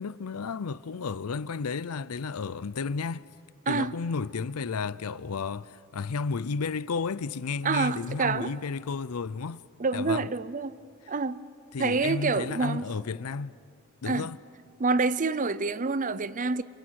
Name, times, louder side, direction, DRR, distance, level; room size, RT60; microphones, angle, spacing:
voice 1, 0.0-3.2 3.7-9.6 9.9-10.3 11.7-13.6 14.0-14.4, left 5 dB, 80° left, 0.6 m, -32 dB
voice 2, 7.6-8.5 9.8-10.8 11.1-11.4 11.8-12.9 14.0-14.3 14.8-16.6, right 4 dB, 35° right, 0.6 m, -27 dB
29.0 x 28.5 x 6.4 m
head